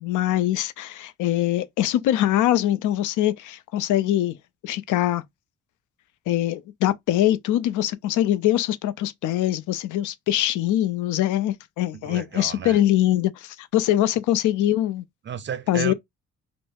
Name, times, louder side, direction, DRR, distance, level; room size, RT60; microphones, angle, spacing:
voice 1, 0.0-4.4 4.6-5.2 6.3-15.0 15.7-15.9, left 13 dB, 80° left, 0.5 m, -23 dB
voice 2, 11.9-12.8 15.2-15.9, right 8 dB, 40° right, 0.5 m, -32 dB
3.1 x 2.0 x 3.3 m
cardioid pair, 90°, 30 cm